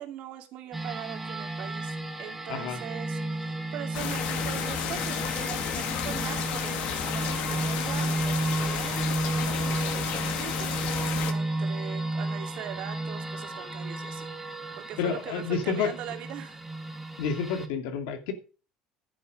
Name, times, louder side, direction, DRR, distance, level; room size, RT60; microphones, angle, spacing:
voice 1, 0.0-14.5 14.9-16.6, right 11 dB, 50° right, 2.2 m, -41 dB
sound 1, 0.7-17.7, right 2 dB, 5° right, 1.4 m, -33 dB
voice 2, 2.5-2.8 15.0-15.9 17.2-18.3, left 6 dB, 80° left, 2.4 m, -29 dB
sound 2, 3.9-11.3, left 10 dB, 55° left, 1.7 m, -32 dB
11.5 x 8.8 x 5.2 m
cardioid pair, 165°, 3 cm